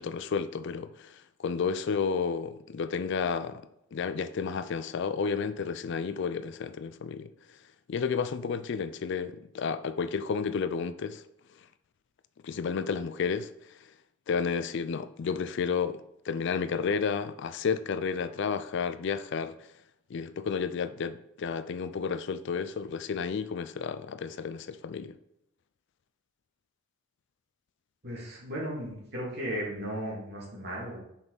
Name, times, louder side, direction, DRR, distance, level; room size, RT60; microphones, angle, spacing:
voice 1, 0.0-7.3 7.9-11.2 12.4-13.8 14.3-19.6 20.1-25.1, left 5 dB, 60° left, 0.4 m, -32 dB
voice 2, 28.0-31.0, equal, 50° right, 2.5 m, -35 dB
5.9 x 5.4 x 4.0 m
head